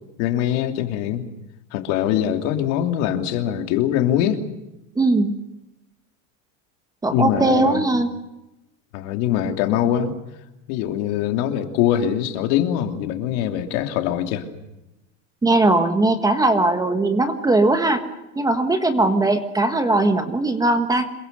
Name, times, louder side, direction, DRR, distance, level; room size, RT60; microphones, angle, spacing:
voice 1, 0.2-1.3 1.7-4.4 7.1-7.8 8.9-10.1 10.7-14.4, left 10 dB, 60° left, 5 dB, 3.0 m, -22 dB
voice 2, 5.0-5.4 7.0-8.1 15.4-18.0 18.3-21.0, right 2 dB, 10° right, 7 dB, 1.4 m, -19 dB
27.0 x 22.5 x 6.8 m, 0.96 s
supercardioid pair, 160°, 40 cm